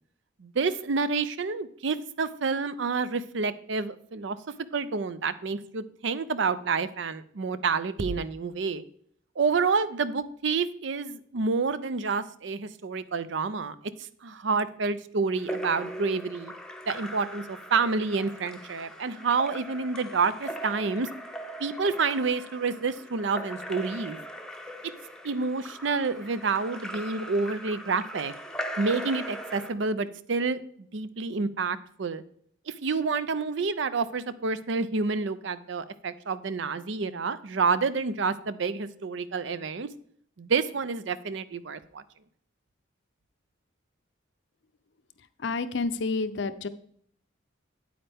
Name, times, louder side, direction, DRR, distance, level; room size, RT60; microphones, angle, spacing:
voice 1, 0.4-4.4 4.7-8.8 9.4-13.7 14.2-16.5 16.9-21.1 21.6-24.2 25.2-28.3 28.8-30.6 30.9-32.2 32.8-39.9 40.4-42.0, right 4 dB, 65° right, 15 dB, 0.5 m, -28 dB
Splash splatter / Drip / Trickle dribble, 15.4-29.7, equal, 5° left, 0.7 m, -39 dB
voice 2, 45.2-46.7, left 3 dB, 60° left, 12 dB, 0.6 m, -30 dB
8.8 x 8.7 x 3.5 m, 0.64 s
head